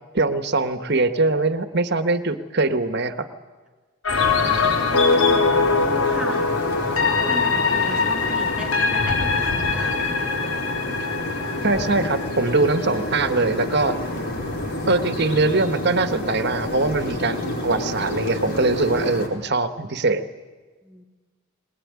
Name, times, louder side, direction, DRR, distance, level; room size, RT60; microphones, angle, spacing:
voice 1, 0.1-3.3 11.6-14.0 14.9-20.2, right 3 dB, 55° right, 10 dB, 1.4 m, -22 dB
sound 1, 4.0-14.1 14.4-14.5, left 4 dB, 75° left, 1.3 m, -23 dB
sound 2, 4.1-19.3, left 1 dB, 55° left, 4.9 m, -29 dB
voice 2, 4.3-5.5 5.8-6.5 6.9-10.4 14.6-14.8 20.8-21.0, left 1 dB, 5° right, -1 dB, 2.6 m, -37 dB
21.5 x 20.5 x 9.7 m, 1.3 s
head